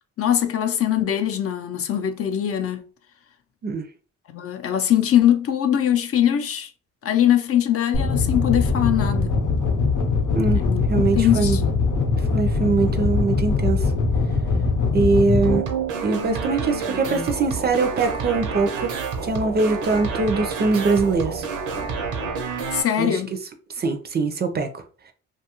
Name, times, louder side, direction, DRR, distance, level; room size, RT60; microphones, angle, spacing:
voice 1, 0.2-2.8 4.3-6.7 7.0-9.3 10.5-10.8 11.2-11.6 22.7-23.4, left 10 dB, 50° left, 0.5 m, -21 dB
sound 1, 7.9-15.6, left 4 dB, 80° left, 0.7 m, -21 dB
voice 2, 10.3-10.6 10.9-11.6 12.3-13.8 14.9-15.6 16.0-18.9 19.2-21.5 23.0-23.2 23.8-24.8, right 4 dB, 35° right, 0.5 m, -22 dB
sound 2, 15.4-22.8, right 5 dB, 85° right, 0.7 m, -28 dB
2.7 x 2.3 x 2.8 m
cardioid pair, 90°, 30 cm